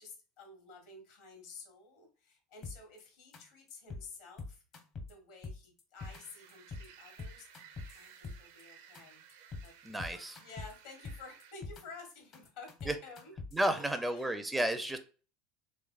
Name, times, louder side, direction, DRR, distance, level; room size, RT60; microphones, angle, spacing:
voice 1, 0.0-4.6 5.0-7.5 7.9-9.2 9.6-9.7 10.0-13.3 13.7-14.4, left 4 dB, 65° left, 3 dB, 1.5 m, -52 dB
sound 1, 2.6-3.0 3.3-3.4 3.7-4.1 4.4-5.1 5.4-6.2 6.5-6.9 7.2-8.6 8.9-9.0 9.3-9.7 10.0-10.7 11.0-11.8 12.1-13.7, left 3 dB, 45° left, 0.9 m, -43 dB
sound 2, 6.0-11.5, right 8 dB, 65° right, 0.5 m, -57 dB
voice 2, 9.8-10.4 12.9-13.0 13.5-15.0, right 1 dB, 10° right, 9 dB, 0.4 m, -32 dB
3.2 x 3.2 x 2.3 m, 0.37 s
hypercardioid pair, 75°, 0 cm